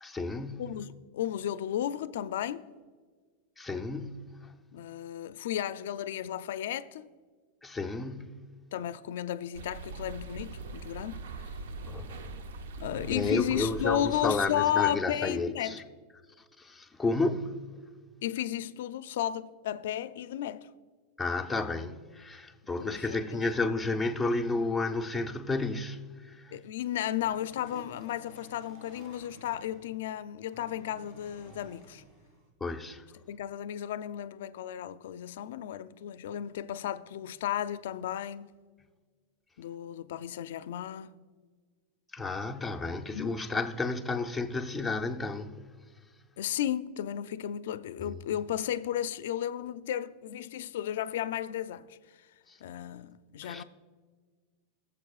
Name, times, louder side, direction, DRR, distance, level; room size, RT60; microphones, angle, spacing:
voice 1, 0.0-0.7 3.6-4.3 7.6-8.4 11.9-12.2 13.1-15.8 16.6-17.6 21.2-26.5 32.6-33.0 42.1-45.5 48.0-48.2 52.5-52.6 53.4-53.6, left 3 dB, 5° left, 0.5 m, -32 dB
voice 2, 0.6-2.7 4.7-7.1 8.7-11.5 12.8-15.8 18.2-20.7 22.8-23.5 26.5-32.0 33.3-38.5 39.6-41.1 43.1-43.4 46.4-52.0 52.6-53.6, left 11 dB, 75° left, 0.4 m, -34 dB
sound 1, 9.5-14.7, right 3 dB, 90° right, 0.6 m, -42 dB
sound 2, 27.2-30.1 30.5-32.5, right 2 dB, 35° right, 2.3 m, -53 dB
20.0 x 7.2 x 2.4 m
supercardioid pair, 160°, 0 cm